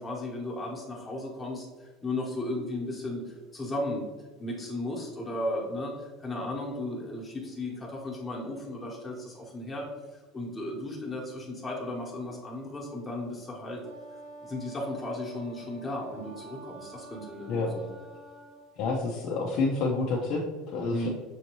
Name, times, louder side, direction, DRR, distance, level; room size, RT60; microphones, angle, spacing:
voice 1, 0.0-4.0 4.4-9.9 10.1-13.8 14.4-17.8 20.9-21.1, left 1 dB, 15° left, -4 dB, 1.1 m, -35 dB
Wind instrument woodwind instrument, 13.8-18.7, right 2 dB, 80° right, 1.0 m, -47 dB
voice 2, 18.8-21.1, left 3 dB, 55° left, -3 dB, 0.6 m, -29 dB
6.2 x 2.7 x 3.0 m, 1.3 s
supercardioid pair, 135°, 0 cm